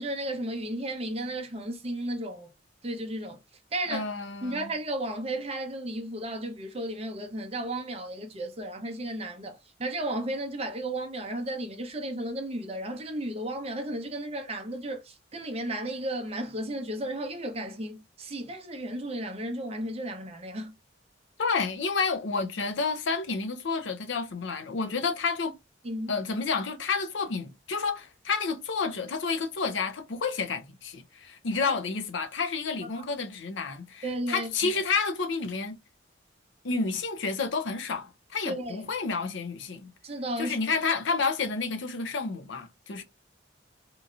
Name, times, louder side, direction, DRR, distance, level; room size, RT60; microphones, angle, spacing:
voice 1, 0.0-2.5 2.8-3.4 3.7-4.0 4.4-20.7 25.8-26.1 34.0-34.8 38.4-38.9 40.0-40.6, right 1 dB, 30° right, 0.6 m, -34 dB
voice 2, 3.9-4.7 21.4-25.6 26.1-35.8 36.6-39.9 40.4-43.0, left 4 dB, 70° left, 0.5 m, -30 dB
3.0 x 2.6 x 2.4 m
head